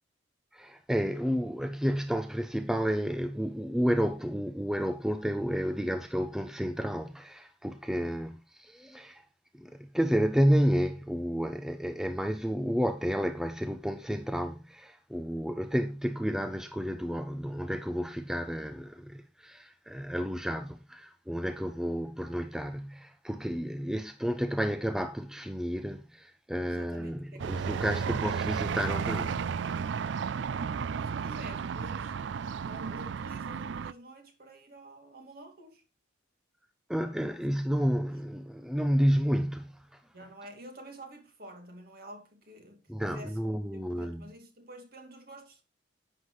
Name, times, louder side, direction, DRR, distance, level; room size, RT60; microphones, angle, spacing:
voice 1, 0.5-9.2 9.6-29.3 36.9-40.0 42.9-44.3, equal, 5° right, 0.5 m, -31 dB
voice 2, 26.7-28.2 30.6-32.2 32.6-35.8 37.4-37.5 37.9-38.2 40.1-45.6, right 1 dB, 50° right, 2.5 m, -49 dB
sound 1, 27.4-33.9, right 6 dB, 65° right, 0.4 m, -33 dB
10.5 x 8.2 x 3.1 m
head